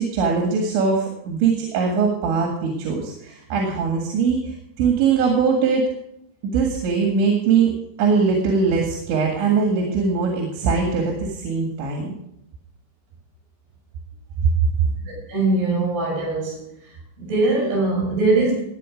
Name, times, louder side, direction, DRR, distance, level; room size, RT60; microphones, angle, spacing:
voice 1, 0.0-5.9 6.4-7.7 8.0-12.1, right 5 dB, 85° right, 1 dB, 4.2 m, -21 dB
voice 2, 15.0-16.7 17.2-18.6, right 3 dB, 65° right, -3 dB, 9.4 m, -21 dB
19.0 x 9.2 x 5.1 m, 0.80 s
omnidirectional pair, 5.2 m